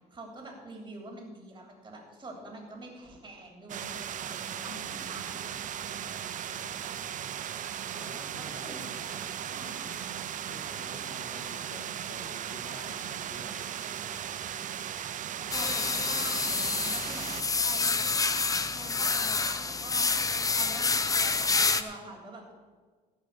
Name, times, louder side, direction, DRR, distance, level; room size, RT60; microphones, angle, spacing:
voice 1, 0.1-5.4 8.1-9.9 10.9-11.1 15.5-20.1 20.5-22.5, right 2 dB, 20° right, 1 dB, 3.1 m, -46 dB
sound 1, 3.7-17.4, right 9 dB, 50° right, 0.7 m, -37 dB
voice 2, 4.7-5.3 6.0-6.2 6.5-7.0 7.9-8.9 10.5-14.6, left 3 dB, 85° left, 2 dB, 2.5 m, -50 dB
sound 2, 15.5-21.8, left 4 dB, 20° left, 0.7 m, -28 dB
15.5 x 5.7 x 8.2 m, 1.5 s
cardioid pair, 110°, 17 cm